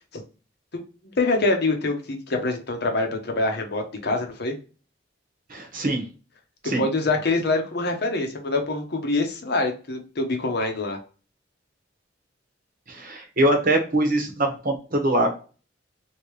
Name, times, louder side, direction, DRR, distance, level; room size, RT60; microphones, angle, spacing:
voice 1, 1.2-4.5 6.6-11.0, left 2 dB, 60° left, 4 dB, 0.8 m, -25 dB
voice 2, 5.5-6.0 6.6-6.8 12.9-15.4, right 1 dB, 50° right, 3 dB, 1.0 m, -23 dB
3.1 x 2.8 x 3.2 m, 0.35 s
head